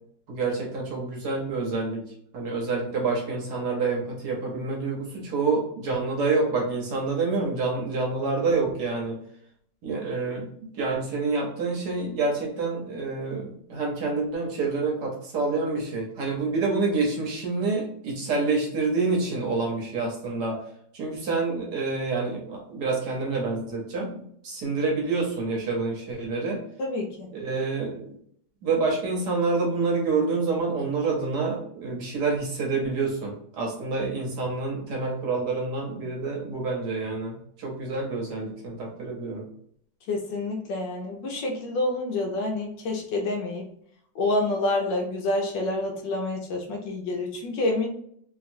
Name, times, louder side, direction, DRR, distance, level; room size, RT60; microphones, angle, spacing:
voice 1, 0.3-2.0 2.3-9.2 9.8-10.5 10.7-20.6 20.9-26.6 27.3-28.1 28.6-39.4, right 3 dB, 65° right, -1 dB, 1.2 m, -27 dB
voice 2, 26.8-27.3 40.1-43.7 44.2-47.9, left 2 dB, 75° left, 1 dB, 1.2 m, -28 dB
3.0 x 2.9 x 2.5 m, 0.67 s
omnidirectional pair, 2.1 m